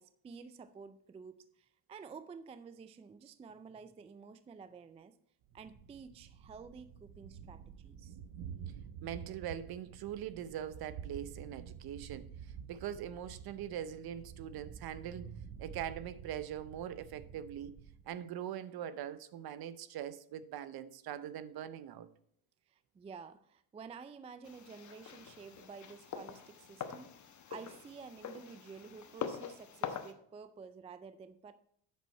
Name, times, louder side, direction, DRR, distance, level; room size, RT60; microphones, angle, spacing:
voice 1, 0.0-5.1 5.5-8.2 15.5-15.7 22.7-27.1 27.5-31.5, right 5 dB, 15° right, 0.3 m, -51 dB
Thunder, 5.5-18.1, right 8 dB, 75° right, 1.1 m, -49 dB
voice 2, 9.0-15.3 15.6-17.8 18.1-22.1, right 10 dB, 50° right, 0.8 m, -42 dB
sound 1, 24.4-30.1, left 7 dB, 40° left, 1.0 m, -44 dB
8.4 x 6.1 x 4.1 m
supercardioid pair, 85°, 47 cm